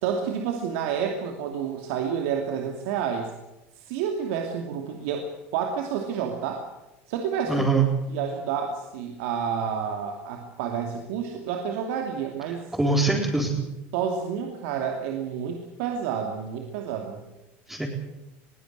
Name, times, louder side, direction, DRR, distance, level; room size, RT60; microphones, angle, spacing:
voice 1, 0.0-3.3 3.8-6.7 7.1-7.8 8.1-12.6 13.9-17.2, right 7 dB, 75° right, 2 dB, 2.7 m, -29 dB
voice 2, 7.5-7.9 12.8-13.6 17.7-17.9, right 3 dB, 5° right, -4 dB, 4.5 m, -22 dB
22.5 x 16.5 x 8.0 m, 0.98 s
supercardioid pair, 100°, 7 cm